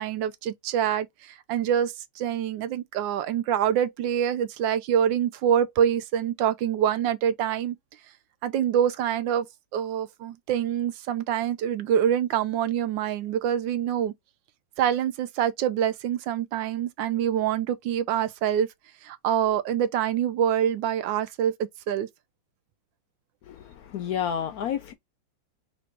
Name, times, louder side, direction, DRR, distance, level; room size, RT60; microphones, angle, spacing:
voice 1, 0.0-7.8 8.4-9.5 9.7-14.1 14.8-18.7 19.0-21.5 21.9-22.1, right 9 dB, 80° right, 1.4 m, -25 dB
voice 2, 23.4-24.9, left 9 dB, 70° left, 0.9 m, -30 dB
4.0 x 2.5 x 4.5 m
omnidirectional pair, 2.0 m